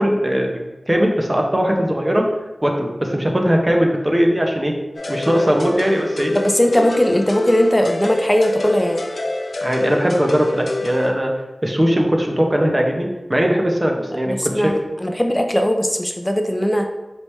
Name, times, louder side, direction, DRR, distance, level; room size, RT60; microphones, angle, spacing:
voice 1, 0.0-2.2 2.6-4.7 5.1-6.3 9.6-11.3 11.6-14.7, equal, 25° right, 1 dB, 0.7 m, -19 dB
sound 1, 4.9-11.1, left 2 dB, 70° left, 0.5 m, -27 dB
voice 2, 6.3-9.0 14.3-16.9, equal, 15° left, 4 dB, 0.5 m, -18 dB
4.9 x 3.1 x 3.1 m, 1.1 s
wide cardioid pair, 60°, 0 cm